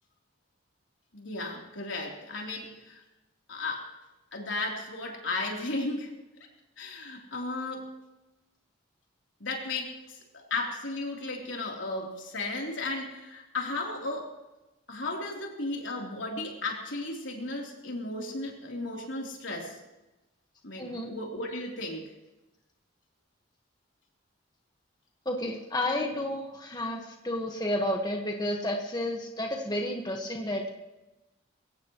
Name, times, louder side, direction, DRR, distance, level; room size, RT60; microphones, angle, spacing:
voice 1, 1.1-3.0 3.5-3.9 4.3-6.1 6.8-7.9 9.4-14.3 14.9-19.8 20.6-22.1, left 2 dB, 80° left, -1 dB, 3.7 m, -35 dB
voice 2, 20.8-21.1 25.2-30.7, left 1 dB, 20° left, 1 dB, 1.6 m, -31 dB
22.0 x 17.5 x 3.2 m, 1.0 s
head